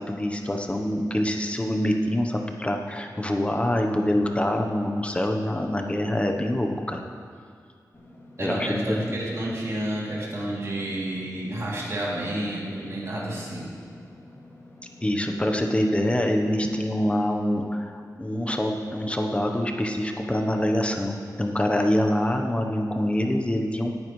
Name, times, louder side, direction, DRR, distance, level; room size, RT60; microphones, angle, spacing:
voice 1, 0.1-7.0 8.4-8.9 15.0-23.9, left 1 dB, 15° left, 3 dB, 0.9 m, -25 dB
Engine / Mechanisms, 7.9-16.9, left 1 dB, 35° left, 2.1 m, -49 dB
voice 2, 8.4-13.7, right 1 dB, 45° right, -6 dB, 2.9 m, -30 dB
17.0 x 9.6 x 3.2 m, 2.2 s
wide cardioid pair, 115°, 7 cm